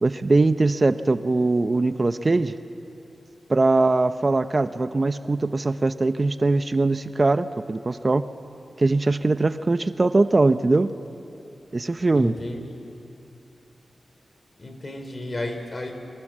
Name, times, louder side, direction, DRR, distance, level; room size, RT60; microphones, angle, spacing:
voice 1, 0.0-2.5 3.5-8.2 8.8-10.9 11.7-12.3, right 3 dB, 40° right, 11 dB, 0.8 m, -21 dB
voice 2, 12.1-12.8 14.6-15.9, left 1 dB, 40° left, 6 dB, 3.7 m, -32 dB
29.0 x 24.5 x 7.5 m, 2.8 s
wide cardioid pair, 70°, 0 cm